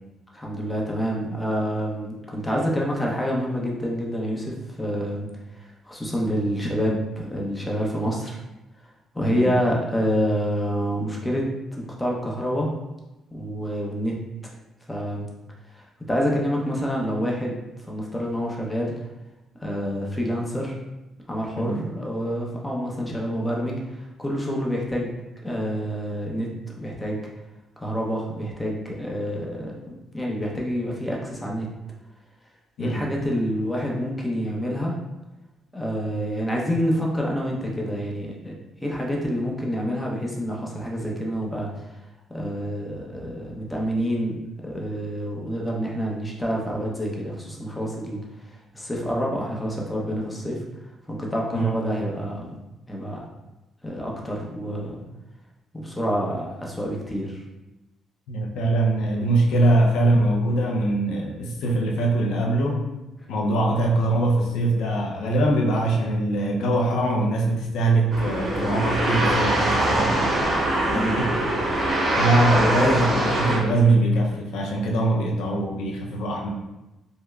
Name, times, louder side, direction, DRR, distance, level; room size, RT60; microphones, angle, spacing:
voice 1, 0.3-5.3 5.8-8.3 9.1-11.5 11.7-12.7 13.3-14.2 14.9-15.3 15.7-17.6 17.8-18.9 19.6-20.8 21.3-25.1 25.4-27.3 27.8-29.7 30.1-31.7 32.8-34.9 35.7-38.6 38.8-41.7 42.3-48.2 48.7-50.6 51.1-52.5 52.9-53.2 53.8-55.0 55.7-57.4 70.9-71.2, equal, 15° left, -2 dB, 0.8 m, -27 dB
voice 2, 58.3-62.9 63.3-70.5 70.8-71.3 72.2-76.5, right 2 dB, 85° left, 0 dB, 0.6 m, -22 dB
sound 1, 68.1-73.6, right 1 dB, 50° right, 0.9 m, -23 dB
5.1 x 2.1 x 2.4 m, 1.0 s
cardioid pair, 90°, 0 cm